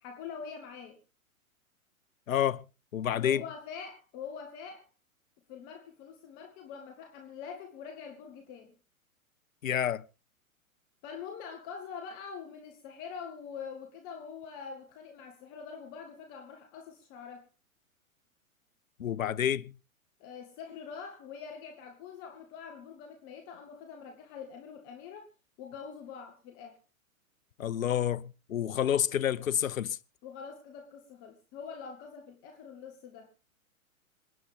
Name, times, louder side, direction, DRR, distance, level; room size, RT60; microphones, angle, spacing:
voice 1, 0.0-1.0 3.1-4.9 5.5-8.7 11.0-17.4 20.2-25.3 25.6-26.8 30.2-33.3, left 6 dB, 30° left, 1.9 m, -44 dB
voice 2, 2.3-2.6 2.9-3.4 9.6-10.0 19.0-19.7 27.6-30.0, left 10 dB, 70° left, 0.7 m, -29 dB
27.0 x 9.4 x 3.5 m
figure-of-eight pair, 110°, 42 cm